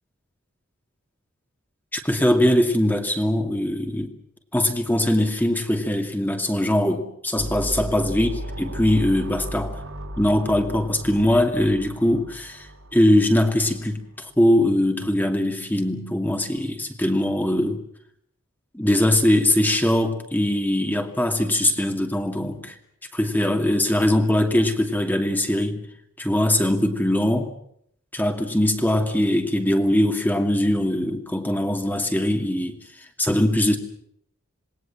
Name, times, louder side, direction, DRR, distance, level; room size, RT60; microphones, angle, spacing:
voice 1, 1.9-4.1 4.5-9.8 10.2-12.7 12.9-17.8 18.7-22.7 23.1-25.8 26.2-27.5 28.1-32.8 33.2-33.8, left 1 dB, 10° left, 4 dB, 2.4 m, -21 dB
sound 1, 7.3-13.8, equal, 70° right, 5.4 m, -35 dB
27.5 x 20.5 x 7.6 m, 0.70 s
head